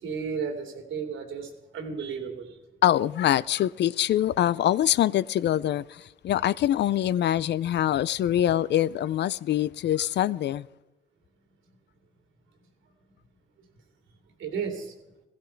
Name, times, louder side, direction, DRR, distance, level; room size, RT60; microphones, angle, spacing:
voice 1, 0.0-2.5 14.4-14.9, right 6 dB, 80° right, 2.6 m, -33 dB
voice 2, 2.8-10.7, left 12 dB, 60° left, 0.5 m, -24 dB
16.0 x 15.5 x 4.6 m
cardioid pair, 90°, 20 cm